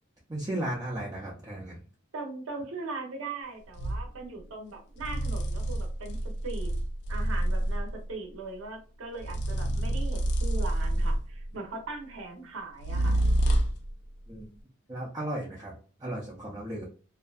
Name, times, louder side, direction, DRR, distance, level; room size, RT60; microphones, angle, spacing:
voice 1, 0.3-1.8 14.3-14.5 14.9-16.9, right 1 dB, 15° right, -4 dB, 0.4 m, -35 dB
voice 2, 2.1-6.2 6.4-6.7 7.1-13.2, right 3 dB, 70° right, 2 dB, 0.6 m, -40 dB
sound 1, 3.7-4.1 5.0-8.0 9.2-11.4 12.8-13.9, right 1 dB, 55° left, 0.3 m, -28 dB
2.5 x 2.2 x 2.3 m, 0.37 s
head